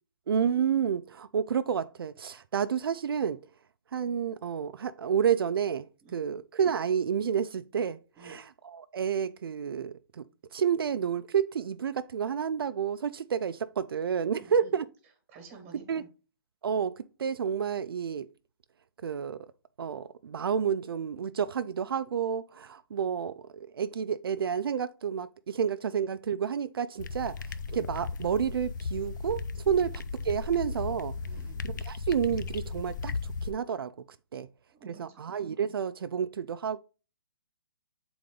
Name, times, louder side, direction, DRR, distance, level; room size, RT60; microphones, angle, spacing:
voice 1, 0.3-3.4 3.9-5.9 6.1-10.2 10.5-14.8 15.9-16.0 16.6-18.3 19.0-19.4 19.8-27.4 27.7-31.1 31.6-33.1 33.4-33.9 34.3-34.5 34.9-36.8, right 7 dB, 80° right, 0.4 m, -30 dB
voice 2, 14.4-14.7 15.3-16.1 29.7-29.8 31.2-31.6 34.7-35.3, right 5 dB, 20° right, 1.4 m, -51 dB
sound 1, 27.0-33.5, left 4 dB, 55° left, 0.4 m, -36 dB
7.7 x 3.9 x 3.7 m
hypercardioid pair, 170°, 12 cm